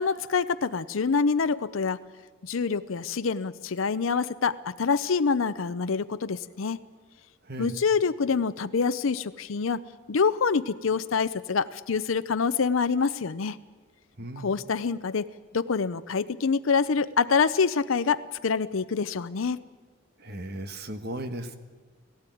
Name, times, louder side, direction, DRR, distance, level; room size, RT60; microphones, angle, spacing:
voice 1, 0.0-2.0 2.4-6.8 7.6-9.8 10.1-13.6 14.4-15.3 15.5-19.6, left 5 dB, 75° left, 12 dB, 0.6 m, -26 dB
voice 2, 14.2-14.5 20.2-21.6, right 1 dB, 50° right, 9 dB, 1.4 m, -36 dB
17.0 x 16.5 x 9.2 m, 1.3 s
head